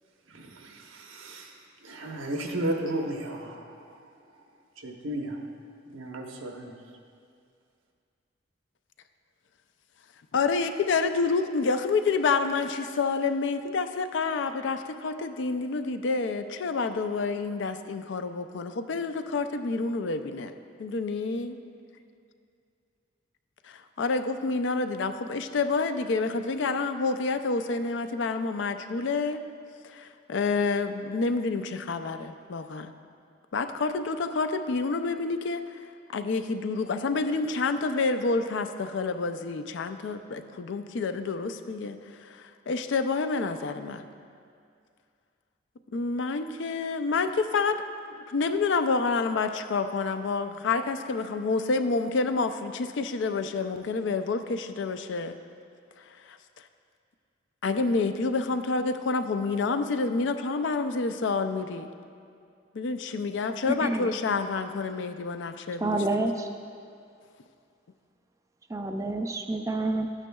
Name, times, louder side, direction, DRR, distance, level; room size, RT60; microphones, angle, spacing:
voice 1, 0.3-4.0 4.8-5.4 5.9-6.7, right 1 dB, 90° right, 2 dB, 0.9 m, -34 dB
voice 2, 10.3-20.5 20.8-21.6 24.0-29.4 29.8-32.9 33.5-35.6 36.1-44.0 45.9-55.4 56.3-56.4 57.6-61.9 62.7-66.0, left 4 dB, 65° left, 9 dB, 0.4 m, -28 dB
voice 3, 63.7-64.1 65.8-66.5 68.7-70.1, right 2 dB, 15° right, 5 dB, 0.3 m, -28 dB
12.0 x 8.9 x 2.3 m, 2.3 s
head